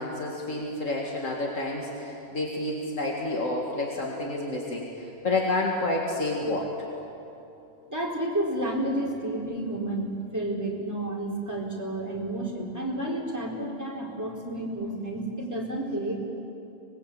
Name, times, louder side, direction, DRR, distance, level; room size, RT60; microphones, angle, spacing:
voice 1, 0.0-6.7, left 2 dB, 80° left, -1 dB, 2.6 m, -29 dB
voice 2, 7.9-16.2, right 1 dB, 15° right, -2 dB, 4.0 m, -31 dB
25.0 x 21.0 x 8.6 m, 2.9 s
omnidirectional pair, 1.3 m